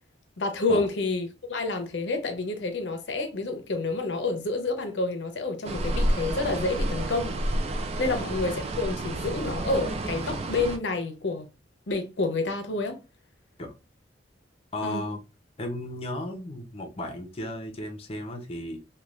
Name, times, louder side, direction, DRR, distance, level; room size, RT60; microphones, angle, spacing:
voice 1, 0.4-7.3 8.0-11.5 11.9-13.0 14.8-15.1, left 3 dB, 75° left, 0.6 m, -29 dB
sound 1, 5.6-10.8, right 1 dB, 35° right, 0.3 m, -30 dB
voice 2, 14.7-15.2 15.6-18.8, left 1 dB, 30° left, 0.6 m, -34 dB
3.1 x 2.3 x 2.4 m
head